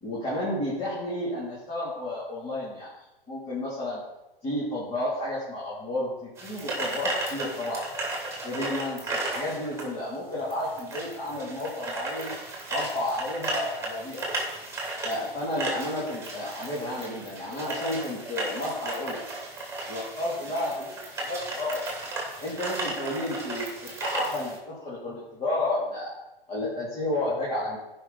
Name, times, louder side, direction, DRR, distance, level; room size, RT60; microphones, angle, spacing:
voice 1, 0.0-2.9 3.3-4.0 4.4-7.9 8.4-12.3 12.7-14.3 15.0-19.2 19.9-20.9 21.2-22.0 22.4-26.1 26.5-27.8, left 1 dB, 20° left, -7 dB, 3.1 m, -31 dB
sound 1, 6.4-24.6, right 2 dB, 10° right, 2.7 m, -35 dB
15.5 x 5.7 x 4.1 m, 0.99 s
hypercardioid pair, 115°, 29 cm